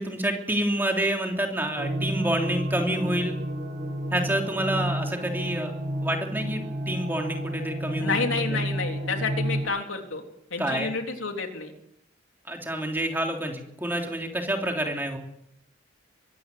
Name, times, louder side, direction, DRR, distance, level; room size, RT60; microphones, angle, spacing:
voice 1, 0.0-3.3 4.1-5.7 6.0-8.2 8.5-8.6 10.6-10.9 12.5-15.2, right 1 dB, 10° right, 2 dB, 3.4 m, -28 dB
sound 1, 1.8-9.6, right 1 dB, 60° right, 7.1 m, -31 dB
voice 2, 8.0-10.2 10.5-11.7, left 4 dB, 85° left, 3 dB, 3.6 m, -29 dB
23.5 x 14.5 x 9.7 m, 0.78 s
head